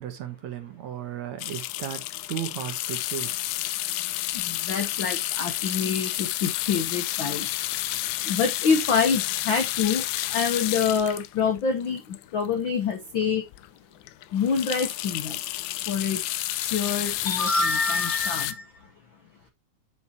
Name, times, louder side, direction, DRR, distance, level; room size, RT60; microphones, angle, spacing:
voice 1, 0.0-3.5, right 11 dB, 65° right, 2.4 m, -35 dB
sound 1, 1.4-12.7 13.2-13.3 13.5-13.7 14.0-18.5, left 16 dB, 85° left, 1.6 m, -30 dB
voice 2, 4.5-7.5 8.3-10.0 10.3-12.0 12.3-13.4 14.3-15.4 15.9-16.2 16.6-18.6, left 5 dB, 65° left, 1.2 m, -26 dB
9.3 x 5.6 x 2.9 m
omnidirectional pair, 3.8 m